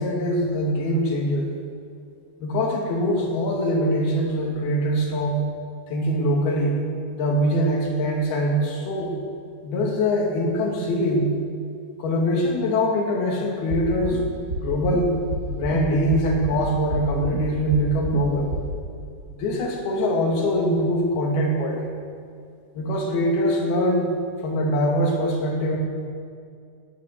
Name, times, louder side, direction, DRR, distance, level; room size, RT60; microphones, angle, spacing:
voice 1, 0.0-1.5 2.4-5.4 5.9-6.8 7.1-9.1 9.6-11.3 12.0-14.2 14.6-15.1 15.5-18.5 19.4-22.0 22.8-24.1 24.4-25.8, equal, 75° left, 0 dB, 3.9 m, -23 dB
sound 1, 13.7-14.2 14.5-15.0 15.3-15.8 16.1-16.6 16.9-17.4 17.7-18.2 18.5-18.6, right 2 dB, 45° right, 1.4 m, -29 dB
18.0 x 10.0 x 6.4 m, 2.3 s
omnidirectional pair, 4.6 m